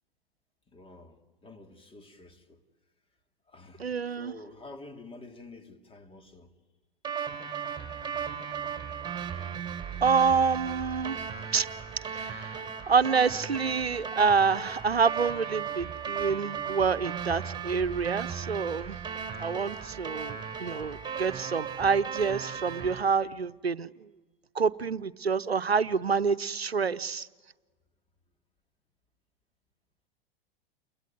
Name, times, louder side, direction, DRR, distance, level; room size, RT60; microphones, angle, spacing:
voice 1, 0.7-2.6 3.5-6.5, left 2 dB, 15° left, 2.7 m, -49 dB
voice 2, 3.8-4.3 10.0-11.3 11.5-11.7 12.0-19.0 19.4-24.1 24.5-27.3, right 5 dB, 90° right, 0.8 m, -27 dB
sound 1, 7.0-23.0, right 7 dB, 15° right, 4.5 m, -36 dB
29.5 x 22.0 x 9.2 m
figure-of-eight pair, 100°, 30 cm